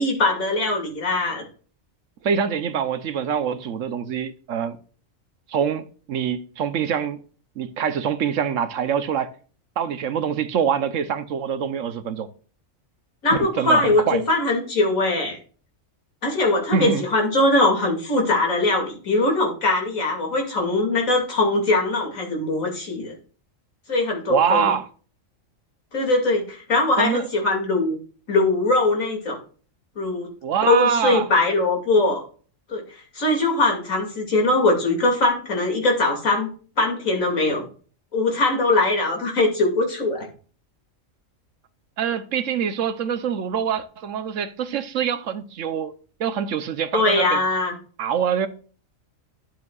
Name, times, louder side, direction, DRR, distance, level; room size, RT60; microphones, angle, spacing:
voice 1, 0.0-1.4 13.2-15.4 16.2-23.1 23.9-24.7 25.9-28.0 28.3-29.4 30.0-30.3 30.7-32.2 32.7-32.8 33.1-36.5 36.8-37.6 38.1-40.3 46.9-47.7, left 2 dB, 85° left, 2.9 m, -21 dB
voice 2, 2.2-4.8 5.5-7.2 7.6-9.3 9.8-12.3 13.3-14.2 16.7-17.0 24.3-24.9 27.0-27.3 30.4-31.3 42.0-45.9 46.2-47.4 48.0-48.5, right 7 dB, 75° right, 1.1 m, -24 dB
12.0 x 7.2 x 2.4 m
omnidirectional pair, 1.4 m